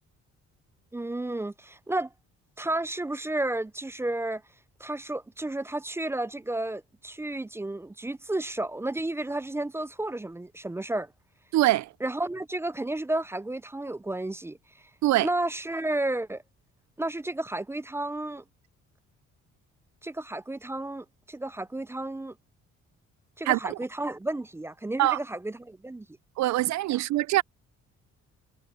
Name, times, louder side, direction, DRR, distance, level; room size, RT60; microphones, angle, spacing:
voice 1, 0.9-2.1 2.6-4.4 4.8-11.1 12.0-14.6 15.2-16.4 17.0-18.4 20.0-22.4 23.4-26.1 26.9-27.0, right 2 dB, 10° right, 0.3 m, -32 dB
voice 2, 11.5-11.9 15.0-15.3 23.5-23.8 25.0-25.2 26.4-27.4, right 16 dB, 65° right, 0.5 m, -23 dB
cardioid pair, 90°, 30 cm